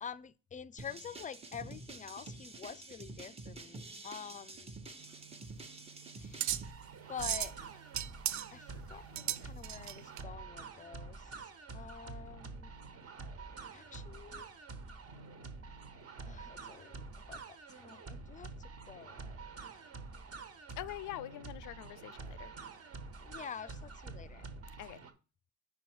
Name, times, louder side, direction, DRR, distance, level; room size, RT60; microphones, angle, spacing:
voice 1, 0.0-4.9 6.1-6.5 6.9-7.6 8.5-12.7 13.7-14.5 16.2-19.3 23.2-24.5, left 7 dB, 25° left, 0.4 m, -48 dB
sound 1, 0.8-6.7, right 3 dB, 20° right, 0.9 m, -48 dB
sound 2, 5.0-10.2, right 12 dB, 70° right, 0.5 m, -38 dB
sound 3, 6.5-25.1, right 4 dB, 55° right, 1.4 m, -48 dB
voice 2, 20.8-22.5 24.8-25.0, left 14 dB, 80° left, 0.5 m, -44 dB
5.5 x 4.7 x 6.1 m
cardioid pair, 90°, 30 cm